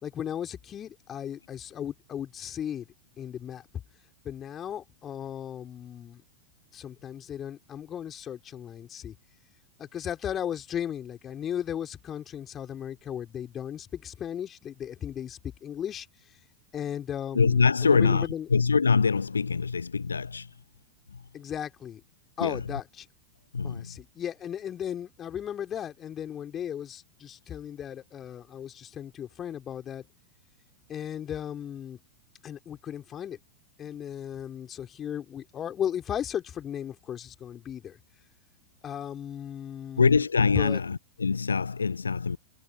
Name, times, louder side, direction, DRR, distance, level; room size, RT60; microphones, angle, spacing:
voice 1, 0.0-2.9 3.2-3.6 4.2-6.2 6.7-9.1 9.8-16.1 16.7-18.5 21.3-22.0 22.4-23.1 23.6-30.0 30.9-32.0 32.4-33.4 33.8-38.0 38.8-40.2 40.5-40.8, left 9 dB, 25° left, 4.7 m, -36 dB
voice 2, 17.3-20.5 22.4-22.6 23.5-23.9 40.0-42.4, left 5 dB, 75° left, 0.4 m, -24 dB
figure-of-eight pair, 90°, 0 cm